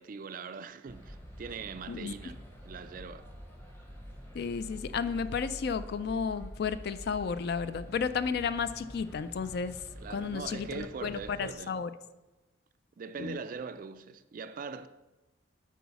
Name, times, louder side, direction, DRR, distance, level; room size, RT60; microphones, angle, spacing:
voice 1, 0.0-3.3 10.0-11.8 13.0-14.9, right 5 dB, 40° right, 0.3 m, -41 dB
sound 1, 0.9-11.5, equal, 10° left, 1.0 m, -47 dB
voice 2, 4.3-9.8 10.1-11.9 13.2-13.4, left 6 dB, 50° left, 0.3 m, -33 dB
8.1 x 4.7 x 5.7 m
head